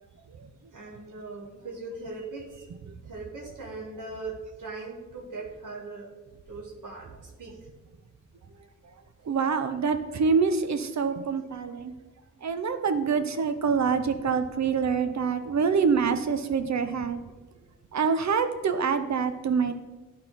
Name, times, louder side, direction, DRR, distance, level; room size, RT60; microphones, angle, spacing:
voice 1, 0.7-2.7 3.1-6.1 6.5-7.6 17.5-17.6, right 3 dB, 90° right, -2 dB, 1.8 m, -40 dB
voice 2, 9.3-11.9 12.4-17.2 17.9-19.7, right 5 dB, 60° right, 9 dB, 0.7 m, -26 dB
12.0 x 4.3 x 3.9 m, 1.2 s
wide cardioid pair, 85°, 31 cm